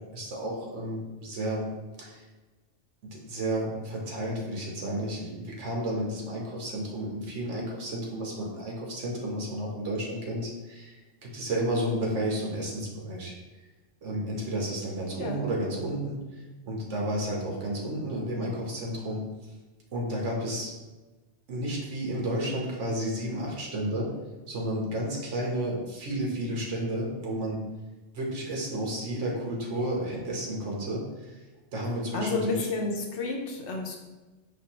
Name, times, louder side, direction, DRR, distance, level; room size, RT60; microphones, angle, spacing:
voice 1, 0.0-1.6 2.0-2.2 3.0-13.3 14.0-19.2 19.9-20.7 21.5-24.1 24.5-27.6 28.1-31.4 31.7-32.7, right 1 dB, 85° right, -2 dB, 1.3 m, -32 dB
voice 2, 32.1-34.0, left 3 dB, 80° left, 1 dB, 1.1 m, -30 dB
5.3 x 3.4 x 2.9 m, 1.2 s
omnidirectional pair, 1.2 m